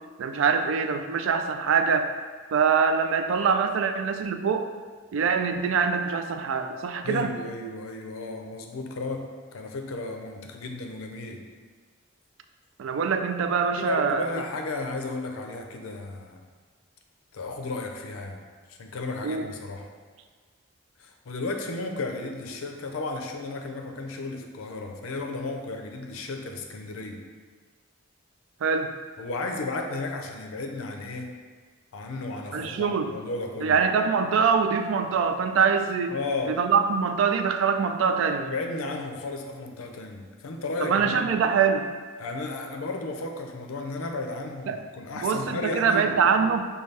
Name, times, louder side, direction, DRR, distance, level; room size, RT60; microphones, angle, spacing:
voice 1, 0.2-2.1 2.5-4.7 5.1-7.3 12.8-14.3 19.2-19.5 28.6-28.9 32.5-33.1 33.6-36.2 36.5-38.5 40.8-41.9 44.7-44.8 45.2-46.7, right 6 dB, 70° right, 7 dB, 0.3 m, -24 dB
voice 2, 7.0-11.4 13.7-16.4 17.3-18.4 18.7-19.9 21.0-27.2 29.2-31.3 31.9-33.8 36.1-36.6 38.4-41.3 42.2-46.2, left 2 dB, 90° left, 3 dB, 0.5 m, -34 dB
5.4 x 2.2 x 3.2 m, 1.5 s
head